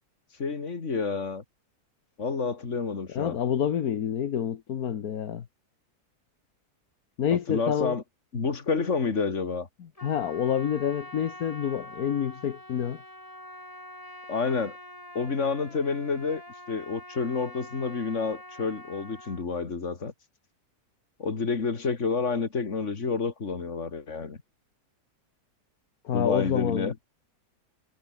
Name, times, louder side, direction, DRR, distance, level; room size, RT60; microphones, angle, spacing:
voice 1, 0.4-1.4 2.2-3.4 7.5-8.0 8.3-9.7 14.3-14.8 15.1-16.4 16.7-20.1 21.2-24.4 26.1-26.9, left 4 dB, 50° left, 2.6 m, -29 dB
voice 2, 3.1-5.5 7.2-8.0 9.8-13.0 26.0-26.9, left 9 dB, 70° left, 1.7 m, -28 dB
Trumpet, 9.9-19.4, left 1 dB, 20° left, 7.5 m, -45 dB
omnidirectional pair, 1.6 m